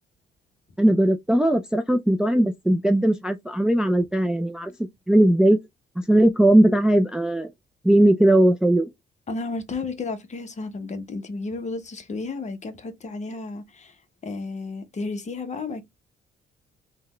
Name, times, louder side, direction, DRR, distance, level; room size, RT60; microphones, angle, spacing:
voice 1, 0.8-4.7 5.1-5.6 6.0-7.5 7.8-8.9, right 1 dB, 5° right, 0.3 m, -19 dB
voice 2, 9.3-14.0 14.2-15.8, left 3 dB, 35° left, 0.8 m, -32 dB
3.6 x 2.2 x 3.0 m
cardioid pair, 90°, 20 cm